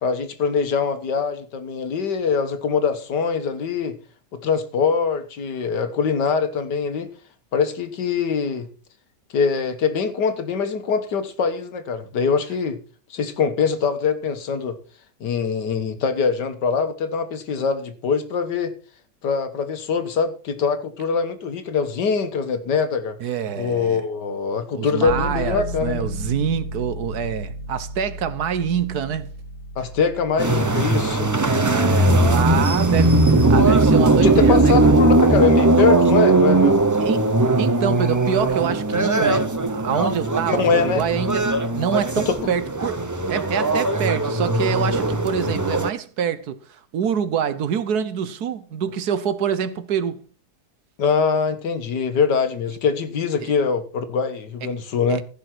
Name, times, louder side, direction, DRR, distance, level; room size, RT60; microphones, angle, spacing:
voice 1, 0.0-4.0 4.3-7.1 7.5-8.7 9.3-12.8 13.1-14.8 15.2-18.7 19.2-23.2 23.6-26.1 29.8-31.3 34.2-36.9 40.6-41.0 42.3-42.4 51.0-55.2, left 5 dB, 85° left, 1.9 m, -23 dB
voice 2, 23.2-24.0 24.8-29.3 31.3-35.0 37.0-50.2 53.4-53.5 55.1-55.2, right 8 dB, 70° right, 1.4 m, -26 dB
sound 1, 25.1-37.6 37.9-38.0, left 1 dB, 20° left, 2.1 m, -36 dB
sound 2, 30.4-45.9, right 2 dB, 20° right, 0.4 m, -19 dB
15.5 x 5.7 x 5.9 m
omnidirectional pair, 1.8 m